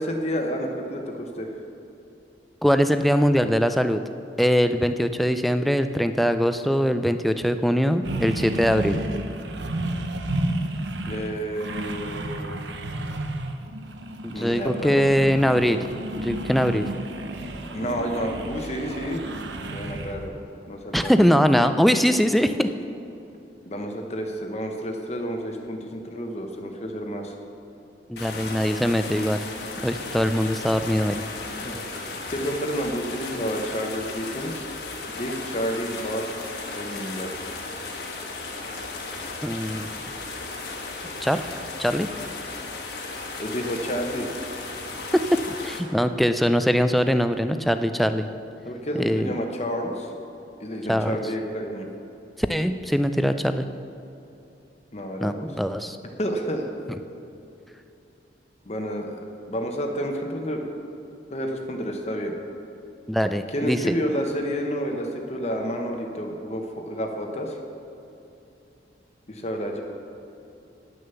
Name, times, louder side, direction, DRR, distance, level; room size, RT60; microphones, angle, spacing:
voice 1, 0.0-1.5 11.1-12.5 14.3-15.0 17.7-19.2 19.7-20.3 20.7-21.1 23.6-27.3 31.4-31.8 32.3-34.7 35.2-36.3 36.7-37.5 43.4-44.3 48.6-50.1 50.6-51.9 54.9-55.5 56.2-56.7 58.7-59.2 59.5-60.7 61.3-62.3 63.5-67.6 69.3-69.8, equal, 35° left, 3 dB, 0.9 m, -30 dB
voice 2, 2.6-4.0 4.4-9.0 14.2-15.8 16.2-16.8 20.9-22.7 28.1-29.4 29.8-31.2 39.4-39.9 41.2-41.4 41.8-42.1 45.1-48.3 48.9-49.3 50.9-51.2 52.4-53.7 55.2-56.0 63.1-63.8, equal, ahead, 8 dB, 0.3 m, -22 dB
sound 1, 8.0-20.3, right 1 dB, 80° right, 0.8 m, -32 dB
sound 2, 28.2-45.8, left 3 dB, 65° left, 1.3 m, -35 dB
10.5 x 6.5 x 6.9 m, 2.8 s
head